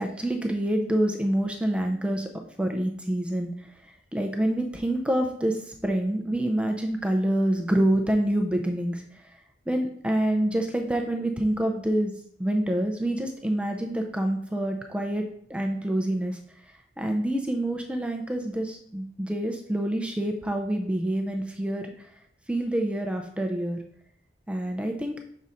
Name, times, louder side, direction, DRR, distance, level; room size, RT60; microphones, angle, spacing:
voice 1, 0.0-2.3 2.6-9.4 9.7-12.1 12.4-15.2 15.5-16.4 17.0-22.1 22.5-23.8 24.5-25.2, right 1 dB, 5° right, 3 dB, 0.4 m, -27 dB
6.3 x 3.9 x 4.1 m, 0.67 s
head